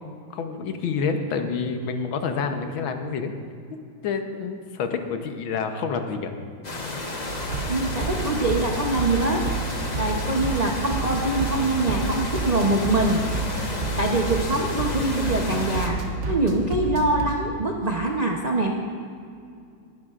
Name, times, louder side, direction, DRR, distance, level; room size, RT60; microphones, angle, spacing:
voice 1, 0.0-3.3 4.0-6.3, left 5 dB, 80° left, 6 dB, 1.7 m, -28 dB
sound 1, 6.6-15.9, left 2 dB, 30° left, 0.9 m, -32 dB
sound 2, 7.3-17.2, right 3 dB, 40° right, 1.3 m, -30 dB
voice 2, 7.7-9.4 10.0-13.2 14.0-16.0 16.3-18.7, right 2 dB, 60° right, 0 dB, 0.4 m, -24 dB
20.5 x 11.0 x 2.5 m, 2.4 s
omnidirectional pair, 2.1 m